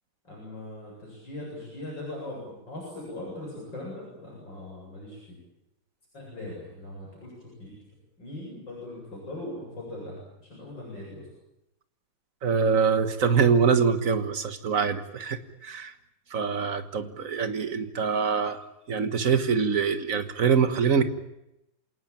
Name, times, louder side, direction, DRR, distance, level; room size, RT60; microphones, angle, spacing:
voice 1, 0.2-5.4 6.1-7.9 8.2-11.3, left 1 dB, 65° left, -3 dB, 8.9 m, -40 dB
voice 2, 12.4-15.9 16.3-21.1, right 6 dB, 45° right, 10 dB, 1.8 m, -24 dB
27.5 x 19.0 x 9.0 m, 0.88 s
omnidirectional pair, 2.1 m